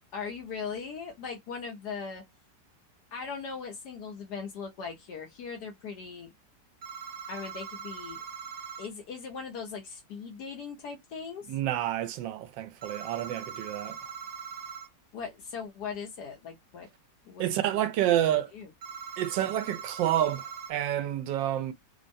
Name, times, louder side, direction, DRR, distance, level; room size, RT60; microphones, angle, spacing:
voice 1, 0.1-2.2 3.1-6.3 7.3-8.2 8.8-11.5 15.1-16.9 17.2-17.8 18.1-18.7, left 5 dB, 70° left, 1.3 m, -39 dB
sound 1, 6.8-8.9 12.8-14.9 18.8-20.7, right 6 dB, 55° right, 0.6 m, -41 dB
voice 2, 11.5-14.0 17.4-18.5 19.2-21.7, right 12 dB, 90° right, 1.3 m, -29 dB
3.5 x 2.1 x 2.5 m
omnidirectional pair, 1.9 m